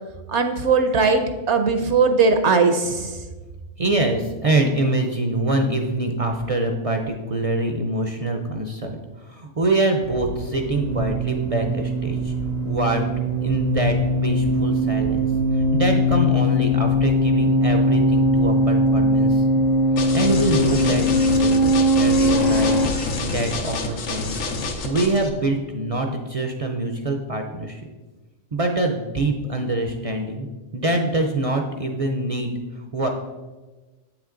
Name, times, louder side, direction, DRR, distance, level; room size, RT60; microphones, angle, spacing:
voice 1, 0.3-3.2, right 4 dB, 65° right, 7 dB, 0.9 m, -19 dB
voice 2, 3.8-12.3 12.6-13.0 13.4-14.0 14.2-15.3 15.5-19.5 20.0-22.9 23.2-24.4 24.8-27.8 28.5-30.5 30.7-33.1, right 2 dB, 45° right, 3 dB, 0.4 m, -24 dB
sound 1, 10.0-22.9, equal, 40° left, 0.7 m, -20 dB
sound 2, 20.0-25.3, left 3 dB, 80° left, 1.3 m, -28 dB
8.2 x 6.0 x 3.8 m, 1.2 s
omnidirectional pair, 1.3 m